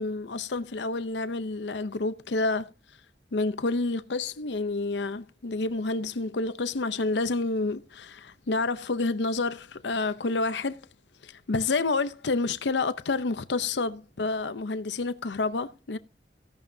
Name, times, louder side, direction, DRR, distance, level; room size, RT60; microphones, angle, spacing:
voice 1, 0.0-2.7 3.3-10.8 11.2-16.0, left 3 dB, 90° left, 0.7 m, -29 dB
15.0 x 11.5 x 2.7 m
head